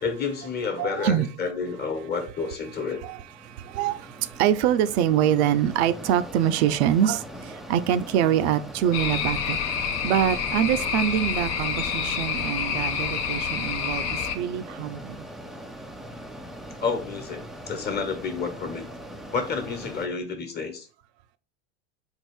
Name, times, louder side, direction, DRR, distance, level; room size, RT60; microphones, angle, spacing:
voice 1, 0.0-3.0 16.8-18.9 19.3-20.9, left 5 dB, 30° left, 1.2 m, -30 dB
voice 2, 0.8-1.3 3.0-3.2 3.4-9.6 10.0-15.3, right 10 dB, 65° right, 0.6 m, -24 dB
Mechanisms, 2.1-20.1, equal, ahead, 0.4 m, -41 dB
sound 1, 8.9-14.4, left 7 dB, 50° left, 0.8 m, -28 dB
4.5 x 2.5 x 4.7 m
hypercardioid pair, 90°, 35 cm